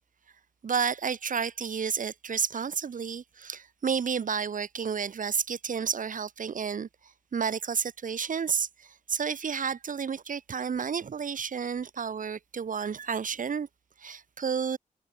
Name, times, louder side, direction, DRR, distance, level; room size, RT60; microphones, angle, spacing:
voice 1, 0.6-13.7 14.0-14.8, right 6 dB, 65° right, 7.6 m, -31 dB
wide cardioid pair, 135°, 15 cm